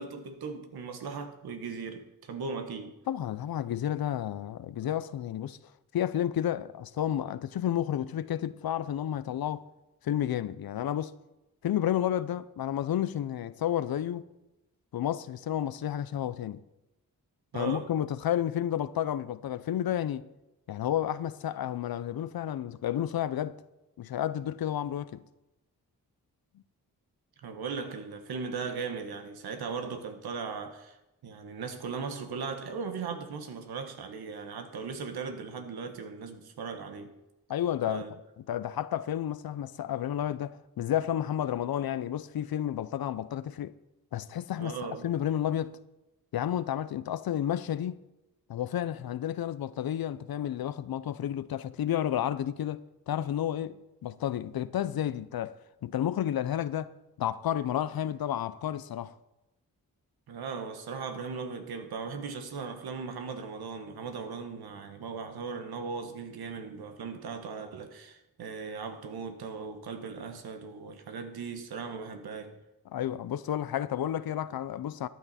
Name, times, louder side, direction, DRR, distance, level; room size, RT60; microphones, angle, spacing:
voice 1, 0.0-3.0 17.5-17.9 27.4-31.0 31.2-37.1 37.9-38.1 44.6-45.1 60.3-72.6, right 5 dB, 85° right, 1.3 m, -38 dB
voice 2, 3.1-5.6 5.9-9.7 10.0-11.1 11.6-14.2 14.9-16.6 17.5-20.3 20.7-23.6 24.0-25.2 37.5-38.1 38.5-43.7 44.1-44.8 45.0-45.8 46.3-48.0 48.5-55.6 55.8-56.9 57.2-59.1 72.9-75.1, left 11 dB, 75° left, 0.7 m, -31 dB
13.5 x 9.5 x 4.2 m
cardioid pair, 50°, 37 cm